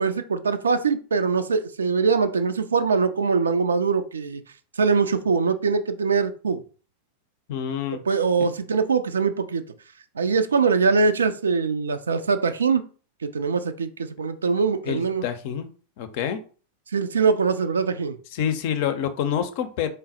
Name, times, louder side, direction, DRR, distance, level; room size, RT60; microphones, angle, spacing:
voice 1, 0.0-4.4 4.8-6.6 8.1-9.6 10.2-12.8 13.2-15.2 16.9-18.2, right 5 dB, 70° right, 0.4 m, -22 dB
voice 2, 7.5-8.0 8.4-8.5 14.8-15.7 16.0-16.4 18.3-19.9, left 9 dB, 50° left, 0.5 m, -27 dB
3.9 x 2.0 x 4.0 m
figure-of-eight pair, 90°, 0 cm